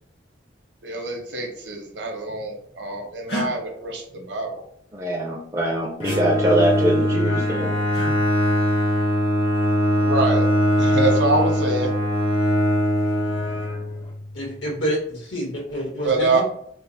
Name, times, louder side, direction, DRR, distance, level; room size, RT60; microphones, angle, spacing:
voice 1, 0.8-4.6 10.0-10.5 10.8-11.9 16.0-16.4, right 2 dB, 70° right, 1 dB, 0.9 m, -25 dB
sound 1, 3.3-3.5 6.0-6.2 7.9-8.2 10.0-10.4, equal, 55° left, 1.1 m, -30 dB
voice 2, 4.9-7.7, right 1 dB, 15° right, -2 dB, 0.4 m, -22 dB
Bowed string instrument, 6.0-14.2, equal, 30° left, 0.6 m, -21 dB
voice 3, 14.3-16.4, equal, 80° left, -3 dB, 1.4 m, -28 dB
3.3 x 2.1 x 4.0 m, 0.68 s
head